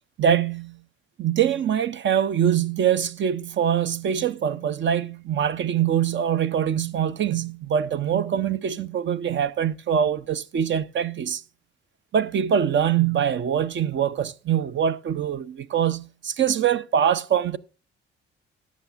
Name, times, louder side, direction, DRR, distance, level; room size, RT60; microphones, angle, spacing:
voice 1, 0.2-0.8 1.2-11.4 12.1-17.6, right 9 dB, 40° right, 0.6 m, -23 dB
17.0 x 7.3 x 2.5 m
hypercardioid pair, 45°, 29 cm